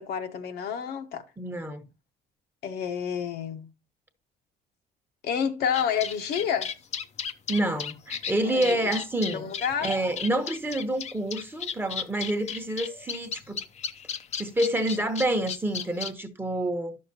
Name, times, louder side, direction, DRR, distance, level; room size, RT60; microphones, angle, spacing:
voice 1, 0.0-1.2 2.6-3.7 5.2-6.7 8.5-8.9 9.3-9.9, left 8 dB, 70° left, 1.0 m, -29 dB
voice 2, 1.4-1.8 7.5-9.5 9.8-13.6 14.4-17.0, right 1 dB, 10° right, 1.0 m, -28 dB
sound 1, 5.7-16.1, left 7 dB, 40° left, 0.6 m, -34 dB
11.0 x 6.4 x 2.8 m
cardioid pair, 110°, 17 cm